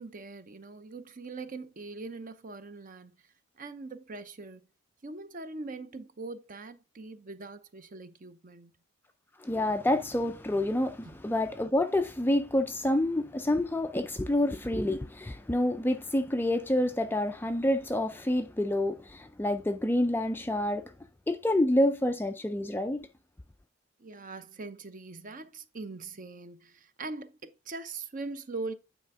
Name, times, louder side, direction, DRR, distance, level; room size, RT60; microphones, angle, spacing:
voice 1, 0.0-3.1 3.6-4.6 5.0-8.7 11.0-11.1 24.0-28.7, right 3 dB, 35° right, 0.6 m, -42 dB
voice 2, 9.4-20.9 21.3-23.1, left 1 dB, 10° left, 0.3 m, -28 dB
9.3 x 4.2 x 3.6 m
head